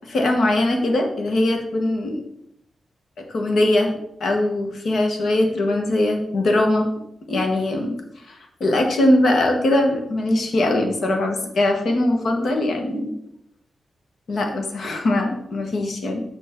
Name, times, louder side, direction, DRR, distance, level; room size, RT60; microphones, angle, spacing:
voice 1, 0.0-2.2 3.3-3.9 4.2-6.9 7.3-13.1 14.3-16.2, left 1 dB, 65° left, 3 dB, 1.4 m, -21 dB
6.8 x 6.3 x 3.7 m, 0.80 s
cardioid pair, 100°, 0 cm